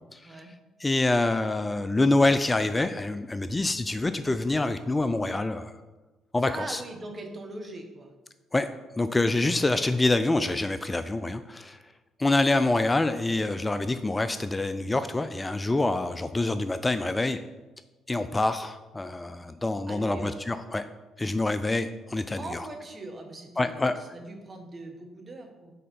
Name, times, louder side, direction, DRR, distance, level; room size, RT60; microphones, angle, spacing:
voice 1, 0.8-5.7 6.3-6.8 8.5-8.7 9.0-11.8 12.2-17.4 18.1-20.8 21.2-22.7 23.6-24.0, left 2 dB, 20° left, 11 dB, 0.3 m, -26 dB
voice 2, 6.5-8.1 19.9-20.3 22.4-25.7, right 2 dB, 35° right, 4 dB, 1.1 m, -41 dB
4.3 x 4.1 x 5.2 m, 1.2 s
hypercardioid pair, 50°, 0 cm